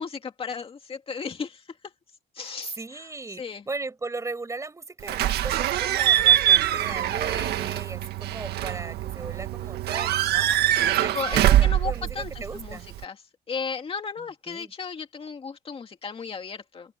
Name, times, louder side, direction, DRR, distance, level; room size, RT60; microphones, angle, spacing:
voice 1, 0.0-1.9 2.3-3.1 3.4-3.6 11.1-17.0, left 5 dB, 35° left, 2.3 m, -35 dB
voice 2, 2.8-10.5 10.9-12.9 14.2-14.7, right 3 dB, 20° right, 6.5 m, -37 dB
Slam / Squeak / Alarm, 5.1-13.0, right 12 dB, 70° right, 1.8 m, -23 dB
open air
cardioid pair, 110°, 17 cm